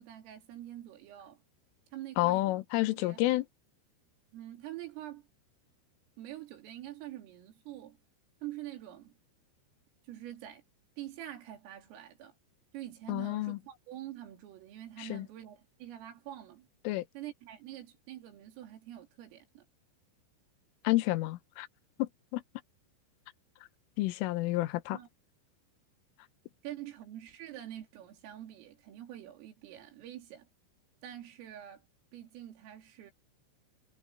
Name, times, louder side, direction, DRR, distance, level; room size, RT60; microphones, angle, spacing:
voice 1, 0.0-1.4 1.9-2.6 3.0-3.2 4.3-5.3 6.2-8.0 8.4-9.1 10.1-10.6 11.0-12.3 12.7-16.7 17.2-19.7 24.9-25.1 26.6-30.5 31.0-31.9 32.1-33.1, right 13 dB, 85° right, 5.6 m, -46 dB
voice 2, 2.2-3.5 13.1-13.6 15.0-15.3 16.9-17.1 20.9-21.7 22.0-22.4 24.0-25.0, left 18 dB, 80° left, 3.6 m, -30 dB
omnidirectional pair, 5.8 m